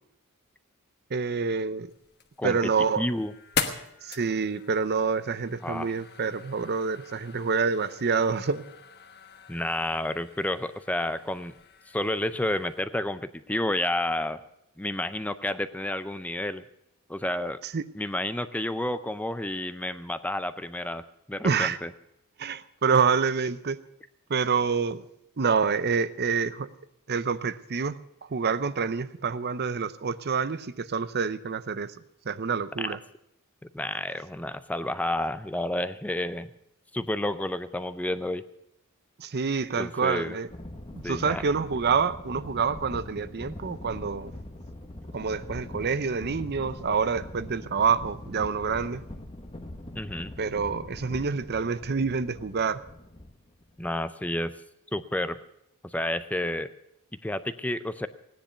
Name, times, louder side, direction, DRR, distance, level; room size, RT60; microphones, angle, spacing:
voice 1, 1.1-1.9 2.4-3.1 4.0-8.7 17.7-17.8 21.4-21.8 22.4-23.8 24.3-25.0 25.4-26.7 27.1-28.0 28.3-31.9 32.3-33.0 39.2-40.5 40.9-44.3 45.1-49.0 50.4-52.8, right 5 dB, 50° right, 14 dB, 0.6 m, -27 dB
sound 1, 1.9-12.8, left 6 dB, 45° left, 1.3 m, -40 dB
voice 2, 2.4-2.7 3.0-3.3 5.6-5.9 9.5-11.5 11.9-14.4 14.8-16.6 17.1-17.6 17.9-21.0 21.3-21.9 32.8-33.0 33.7-36.5 36.9-38.4 39.8-40.4 41.0-41.4 50.0-50.3 53.8-54.5 54.9-55.4 55.8-56.7 57.2-58.1, left 1 dB, 5° left, 12 dB, 0.5 m, -30 dB
sound 2, 40.5-53.8, left 1 dB, 25° left, 1.2 m, -42 dB
17.0 x 10.5 x 6.7 m, 0.78 s
head